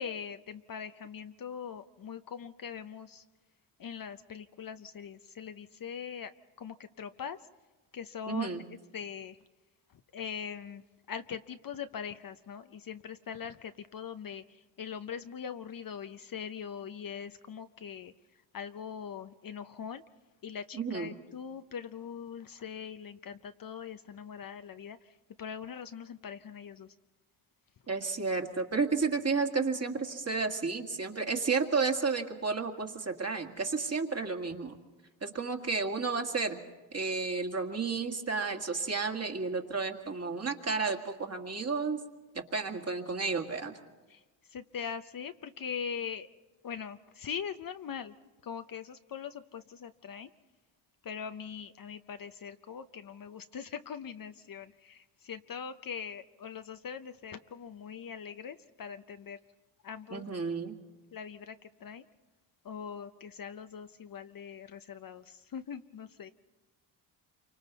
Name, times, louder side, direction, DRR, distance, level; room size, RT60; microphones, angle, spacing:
voice 1, 0.0-3.2 3.8-6.3 6.6-7.4 7.9-8.6 8.9-9.4 10.1-10.8 11.1-18.1 18.5-20.0 20.4-26.9 44.1-44.2 44.5-46.3 46.6-48.1 48.4-50.3 51.0-59.4 59.8-60.3 61.1-62.0 62.6-66.3, left 7 dB, 45° left, 10 dB, 0.7 m, -42 dB
voice 2, 8.3-8.6 20.7-21.1 27.9-34.8 35.2-36.6 36.9-42.0 42.3-43.7 60.1-60.8, right 4 dB, 30° right, 4 dB, 2.0 m, -32 dB
27.5 x 25.0 x 4.1 m, 1.2 s
cardioid pair, 70°, 49 cm